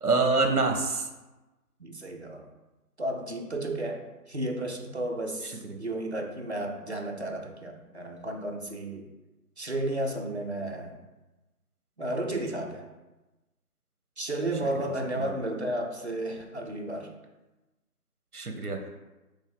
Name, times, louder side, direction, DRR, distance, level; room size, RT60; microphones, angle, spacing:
voice 1, 0.0-1.1 5.4-5.8 14.7-14.9 15.2-15.3 18.3-19.0, right 3 dB, 70° right, 4 dB, 0.8 m, -27 dB
voice 2, 1.8-2.4 3.0-9.1 9.6-11.0 12.0-12.9 14.2-17.1, right 1 dB, 50° right, 1 dB, 0.5 m, -33 dB
3.6 x 3.0 x 3.6 m, 1.1 s
figure-of-eight pair, 165°, 46 cm